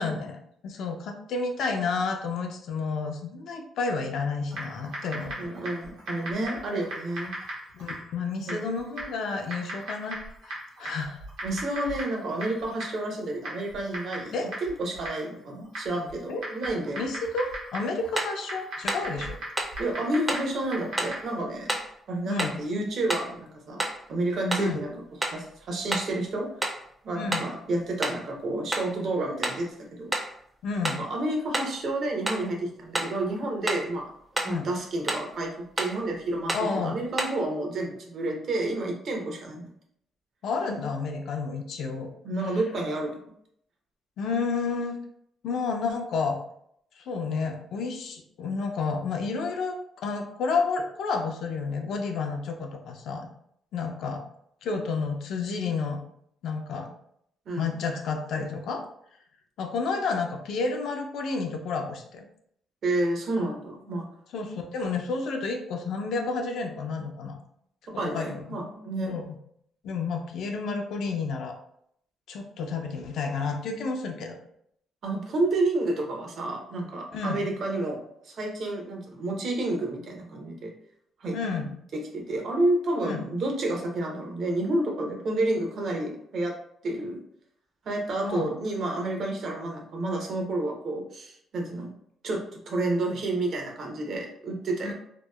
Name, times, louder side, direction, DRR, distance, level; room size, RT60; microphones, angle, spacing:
voice 1, 0.0-5.4 7.7-10.2 10.4-11.2 14.3-14.5 16.3-16.4 17.0-19.4 22.3-22.5 24.6-24.8 27.2-27.4 30.6-31.0 34.5-34.7 36.5-36.9 40.4-42.1 44.2-45.0 45.4-46.4 47.0-53.3 53.7-54.2 54.6-56.0 56.4-56.9 57.6-58.8 59.6-62.3 64.3-67.4 68.1-68.6 69.1-69.4 69.8-71.5 72.3-74.4 77.1-77.4 81.3-81.8 83.0-83.2 88.2-88.5 94.8-94.9, left 4 dB, 75° left, 3 dB, 0.4 m, -30 dB
Typing, 4.5-21.4, right 1 dB, 85° right, 1.0 m, -39 dB
voice 2, 5.4-7.4 8.5-8.6 11.4-14.4 14.6-17.0 19.8-21.8 22.1-26.5 27.0-30.1 31.0-34.1 34.4-39.7 42.2-43.2 57.5-57.7 62.8-64.1 67.9-69.2 75.0-80.7 81.2-81.4 81.9-86.6 86.8-87.2 87.8-91.9 92.2-94.9, right 2 dB, 60° right, 1 dB, 0.6 m, -30 dB
sound 1, 18.2-18.4 18.9-19.1 19.6-19.8 20.3-20.5 21.0-21.2 21.7-21.9 22.4-22.6 23.1-23.3 23.8-24.0 24.5-24.7 25.2-25.4 25.9-26.1 26.6-26.9 27.3-27.5 28.0-28.3 28.7-28.9 29.4-29.7 30.1-30.3 30.8-31.1 31.5-31.8 32.3-32.5 32.9-33.2 33.7-33.9 34.4-34.6 35.1-35.3 35.8-36.0 36.5-36.7 37.2-37.4, right 1 dB, 20° right, 0.4 m, -30 dB
2.7 x 2.0 x 2.2 m, 0.70 s
cardioid pair, 90°, 0 cm